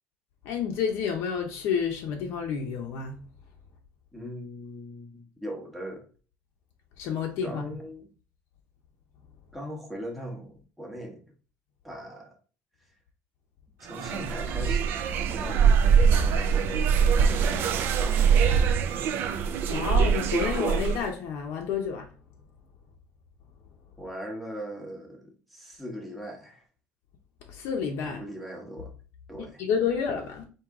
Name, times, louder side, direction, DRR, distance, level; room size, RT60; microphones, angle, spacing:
voice 1, 0.4-3.2 7.0-7.7 19.7-22.1 27.5-28.2 29.4-30.5, left 6 dB, 60° left, 0.7 m, -30 dB
voice 2, 4.1-6.0 7.4-8.1 9.5-11.2 11.8-12.3 13.8-18.7 24.0-26.6 28.0-28.9 29.3-29.6, equal, ahead, 0.9 m, -40 dB
sound 1, 13.9-21.1, right 6 dB, 50° right, 0.4 m, -23 dB
4.6 x 2.8 x 3.5 m
cardioid pair, 175°, 5 cm